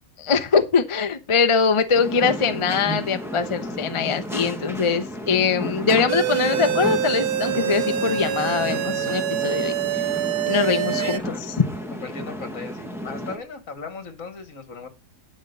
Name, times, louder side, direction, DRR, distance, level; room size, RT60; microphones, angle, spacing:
voice 1, 0.2-9.7 10.5-11.7, left 5 dB, 35° left, 0.5 m, -22 dB
sound 1, 1.9-13.4, equal, ahead, 1.2 m, -32 dB
sound 2, 6.1-11.2, right 11 dB, 85° right, 1.3 m, -25 dB
voice 2, 11.0-11.4 11.9-14.9, left 4 dB, 60° left, 2.0 m, -37 dB
11.5 x 4.5 x 6.8 m
omnidirectional pair, 1.6 m